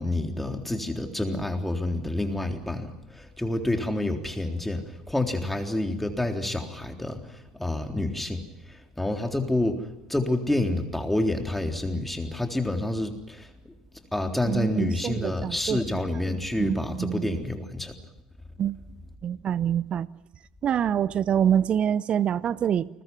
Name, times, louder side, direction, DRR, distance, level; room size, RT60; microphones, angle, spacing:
voice 1, 0.0-7.2 7.6-8.4 9.0-9.8 10.1-13.5 14.1-17.9, left 1 dB, 5° left, 3.7 m, -28 dB
voice 2, 14.4-15.8 16.1-16.2 16.6-17.4 18.6-18.8 19.2-20.1 20.6-22.9, right 9 dB, 35° right, 0.8 m, -26 dB
29.5 x 21.0 x 6.1 m
figure-of-eight pair, 70°, 3 cm